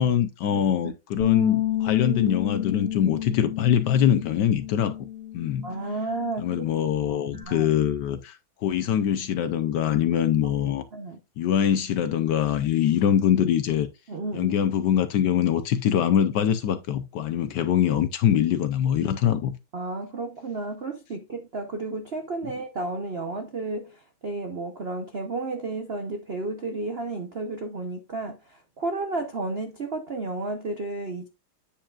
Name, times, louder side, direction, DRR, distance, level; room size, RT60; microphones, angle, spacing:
voice 1, 0.0-5.0 5.3-5.7 6.4-10.9 11.4-13.9 14.3-19.5, left 9 dB, 70° left, 1.1 m, -23 dB
voice 2, 0.5-0.9 5.6-6.7 7.3-7.7 10.7-11.2 14.1-14.5 19.7-31.3, right 2 dB, 60° right, 0.6 m, -32 dB
Bass guitar, 1.2-7.4, left 12 dB, 35° left, 2.5 m, -31 dB
8.8 x 7.3 x 2.4 m
omnidirectional pair, 2.3 m